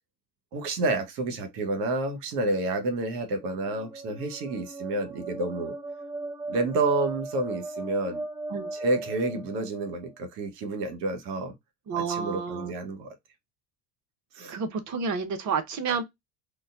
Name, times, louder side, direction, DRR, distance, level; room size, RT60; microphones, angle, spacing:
voice 1, 0.5-5.7 6.5-8.2 8.7-11.5 12.1-13.1 14.3-14.5 15.9-16.0, right 2 dB, 70° right, 1.1 m, -29 dB
sound 1, 3.3-10.1, right 2 dB, 5° right, 0.8 m, -37 dB
voice 2, 11.9-12.7 14.5-16.0, right 5 dB, 35° right, 0.8 m, -30 dB
5.0 x 2.2 x 2.4 m
figure-of-eight pair, 60°, 49 cm